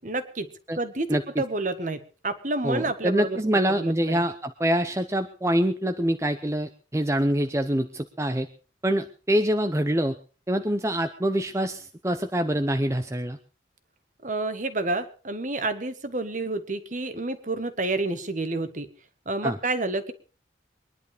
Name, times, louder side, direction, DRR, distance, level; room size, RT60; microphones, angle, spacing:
voice 1, 0.0-0.5 0.8-3.4 3.8-4.2 14.2-18.9 19.3-20.1, right 2 dB, 45° right, 10 dB, 1.6 m, -29 dB
voice 2, 1.1-1.4 2.6-8.5 8.8-10.2 10.5-13.4 19.4-19.6, right 1 dB, 15° right, 7 dB, 0.8 m, -25 dB
22.5 x 11.0 x 5.0 m, 0.37 s
head